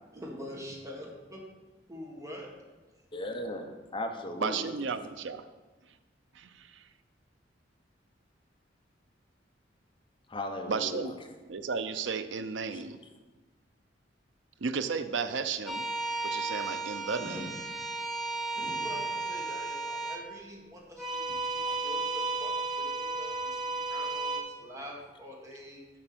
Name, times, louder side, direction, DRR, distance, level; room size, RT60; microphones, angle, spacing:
voice 1, 0.1-1.4 1.9-2.5 17.2-17.6 18.6-25.9, equal, 15° right, -1 dB, 1.5 m, -45 dB
voice 2, 3.1-4.7 10.3-11.0 12.7-12.8 21.7-21.8, left 1 dB, 25° left, 3 dB, 0.9 m, -37 dB
voice 3, 4.4-5.5 6.3-6.8 10.7-11.2 11.5-13.0 14.6-15.8 16.2-17.5, right 5 dB, 75° right, 10 dB, 0.5 m, -33 dB
sound 1, 15.7-20.2 20.9-24.4, right 3 dB, ahead, 0.9 m, -34 dB
7.8 x 4.4 x 6.0 m, 1.2 s
head